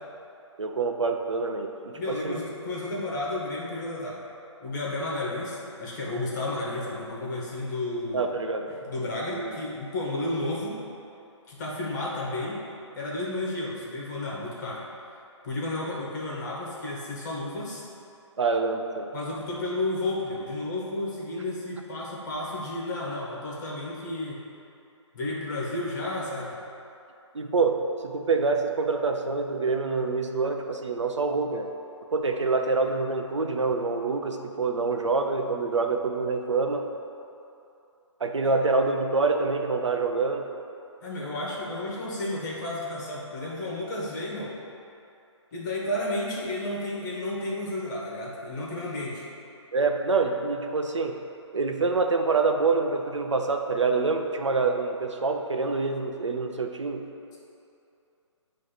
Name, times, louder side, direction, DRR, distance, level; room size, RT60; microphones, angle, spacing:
voice 1, 0.6-2.4 8.1-8.7 9.3-9.6 18.4-19.1 27.3-31.7 32.1-36.9 38.2-40.5 49.7-51.2 51.5-57.0, right 4 dB, 70° right, 4 dB, 0.7 m, -26 dB
voice 2, 2.0-4.2 4.6-8.3 8.8-10.8 11.5-12.6 13.0-14.8 15.4-17.8 19.1-24.4 25.1-26.6 41.0-44.6 45.5-49.3, left 2 dB, 40° left, -4 dB, 1.8 m, -32 dB
9.6 x 3.2 x 5.8 m, 2.7 s
figure-of-eight pair, 135°, 16 cm